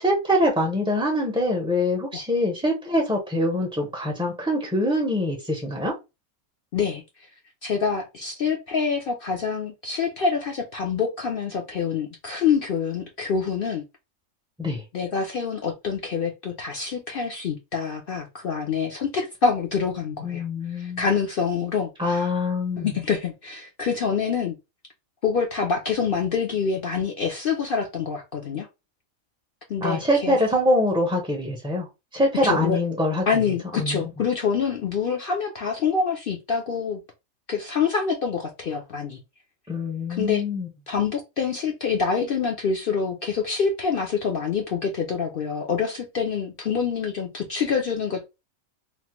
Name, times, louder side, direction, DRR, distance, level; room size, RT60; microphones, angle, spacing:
voice 1, 0.0-5.9 14.6-14.8 20.2-21.1 22.0-22.9 29.8-31.9 32.1-33.2 33.8-34.0 39.7-40.7, left 1 dB, 5° right, 0.4 m, -24 dB
voice 2, 6.7-7.0 7.6-13.8 14.9-20.4 20.7-22.2 22.8-24.5 25.2-28.7 29.7-30.4 32.4-32.8 33.3-37.0 37.5-39.2 40.1-40.4 40.9-48.3, left 6 dB, 60° left, 0.6 m, -26 dB
3.0 x 2.1 x 2.9 m
omnidirectional pair, 1.5 m